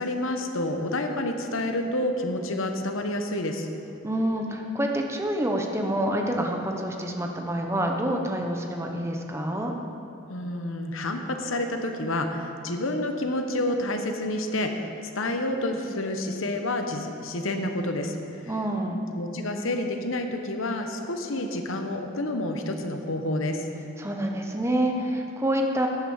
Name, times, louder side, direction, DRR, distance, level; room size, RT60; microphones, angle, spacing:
voice 1, 0.0-3.7 10.3-14.9 15.1-18.1 18.4-18.5 19.2-23.7, left 1 dB, 70° left, 5 dB, 1.1 m, -29 dB
voice 2, 4.0-9.7 18.5-19.0 24.0-25.9, right 1 dB, 15° right, 2 dB, 0.9 m, -27 dB
10.5 x 7.9 x 7.2 m, 2.7 s
head